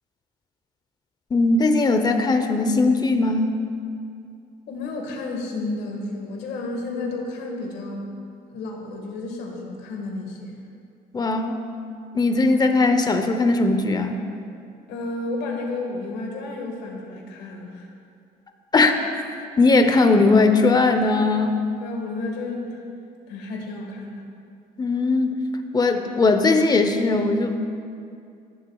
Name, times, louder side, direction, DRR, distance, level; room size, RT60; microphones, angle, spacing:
voice 1, 1.3-3.6 11.1-11.6 12.1-14.2 18.7-18.9 19.6-21.5 24.8-25.3 25.7-27.6, left 3 dB, 25° left, 6 dB, 0.7 m, -19 dB
voice 2, 4.7-8.1 8.5-10.6 14.9-17.9 21.8-22.8 23.3-24.3, left 2 dB, 80° left, 1 dB, 1.7 m, -32 dB
15.5 x 7.3 x 2.3 m, 2.5 s
cardioid pair, 110°, 17 cm